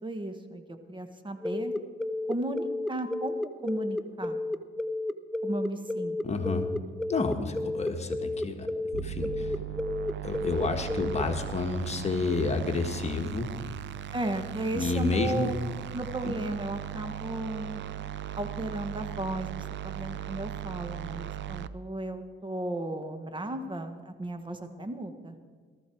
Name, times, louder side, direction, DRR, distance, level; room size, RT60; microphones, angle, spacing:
voice 1, 0.0-1.7 2.3-4.4 5.4-6.2 14.1-15.5 15.9-17.8 18.3-25.3, right 1 dB, 25° right, 7 dB, 1.4 m, -35 dB
sound 1, 1.4-11.2, left 2 dB, ahead, 0.7 m, -32 dB
voice 2, 6.2-6.7 7.1-9.6 10.2-13.6 14.7-15.6 16.2-16.4, left 3 dB, 35° left, 4 dB, 1.6 m, -30 dB
sound 2, 8.9-21.7, right 11 dB, 65° right, 0.5 m, -38 dB
18.5 x 13.5 x 4.6 m, 1.6 s
cardioid pair, 90°, 20 cm